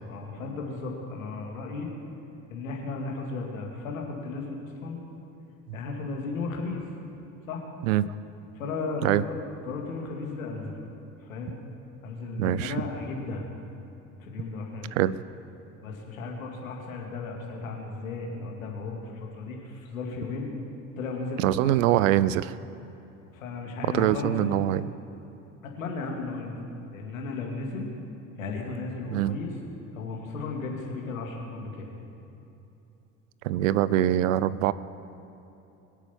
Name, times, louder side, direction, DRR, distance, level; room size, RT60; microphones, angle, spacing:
voice 1, 0.1-1.9 2.5-5.0 5.7-6.8 7.5-7.6 8.5-9.4 9.7-10.9 11.2-11.6 12.0-13.5 14.2-14.9 15.8-20.5 21.0-22.1 23.3-24.5 25.6-26.6 26.9-27.9 28.4-29.5 29.9-31.9, left 3 dB, 80° left, 1 dB, 2.3 m, -35 dB
voice 2, 12.4-12.7 14.9-15.2 21.4-22.6 23.9-24.9 29.1-29.4 33.4-34.7, right 13 dB, 75° right, 18 dB, 0.6 m, -23 dB
23.0 x 8.3 x 7.1 m, 2.9 s
hypercardioid pair, 60°, 40 cm